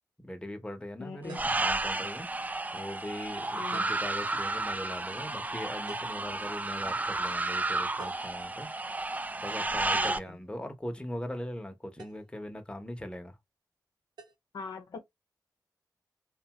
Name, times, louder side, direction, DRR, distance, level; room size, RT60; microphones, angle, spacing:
voice 1, 0.2-8.7 9.0-13.3, left 1 dB, 15° left, 0.8 m, -40 dB
voice 2, 1.0-1.4 2.6-2.8 3.5-3.9 9.9-10.4 14.5-15.0, left 5 dB, 75° left, 0.5 m, -42 dB
sound 1, 1.3-10.2, right 2 dB, 25° right, 0.3 m, -32 dB
sound 2, 1.3-1.7 3.7-4.1 5.9-6.3 8.0-8.4 10.0-10.4 12.0-12.3 14.2-14.4, right 4 dB, 85° right, 0.6 m, -49 dB
2.7 x 2.3 x 2.9 m
cardioid pair, 50°, 7 cm